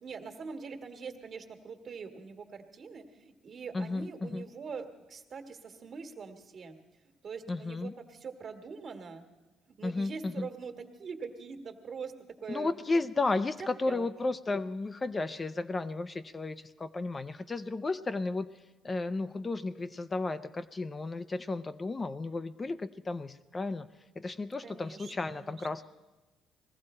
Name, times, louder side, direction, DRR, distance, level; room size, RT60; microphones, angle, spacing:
voice 1, 0.0-6.8 7.0-9.2 9.7-12.1 12.4-12.7 13.8-14.1 24.6-25.7, right 5 dB, 50° right, 6 dB, 1.7 m, -43 dB
voice 2, 3.7-4.5 7.5-7.9 9.8-10.5 12.5-18.5 18.8-23.9 24.2-25.8, left 3 dB, 25° left, 11 dB, 0.5 m, -33 dB
20.5 x 15.0 x 4.4 m, 1.2 s
cardioid pair, 95°, 0 cm